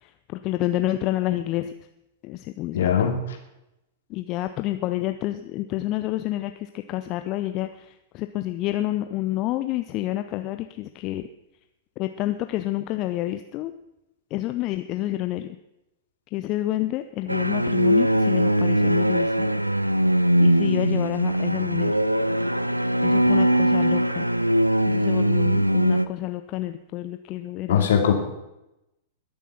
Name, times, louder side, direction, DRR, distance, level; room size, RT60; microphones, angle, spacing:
voice 1, 0.0-1.7 2.2-3.1 4.1-11.3 12.0-13.7 14.3-15.6 16.3-19.5 20.4-21.9 23.0-24.3 24.9-27.9, left 15 dB, 35° left, 9 dB, 0.6 m, -29 dB
voice 2, 2.7-3.4 27.7-28.1, left 8 dB, 60° left, 3 dB, 2.7 m, -21 dB
sound 1, 17.3-26.1, equal, 90° right, 0.5 m, -21 dB
21.5 x 7.2 x 5.9 m, 0.90 s
figure-of-eight pair, 100°, 0 cm